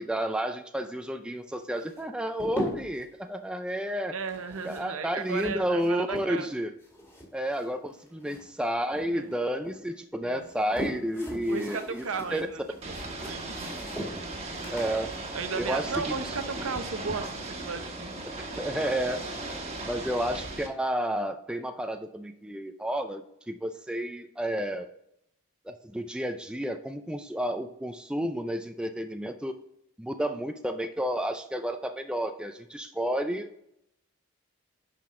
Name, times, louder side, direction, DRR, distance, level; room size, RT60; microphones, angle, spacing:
voice 1, 0.0-4.1 4.6-6.7 7.3-12.0 12.3-12.5 14.7-15.1 15.5-16.3 18.6-19.2 19.8-24.9 25.6-29.6 30.0-33.6, equal, 5° right, 6 dB, 0.4 m, -31 dB
sound 1, 1.8-3.1 4.2-6.5 6.8-8.6 8.9-9.8 10.3-16.4, equal, 15° left, 2.2 m, -40 dB
voice 2, 4.1-6.5 8.2-8.4 9.1-9.3 10.2-10.4 11.5-12.6 12.9-13.7 15.3-18.3, right 5 dB, 75° right, 9 dB, 0.8 m, -35 dB
Ocean / Boat Water vehicle, 12.8-20.7, right 2 dB, 30° right, 1.4 m, -37 dB
10.5 x 6.0 x 3.7 m, 0.77 s
head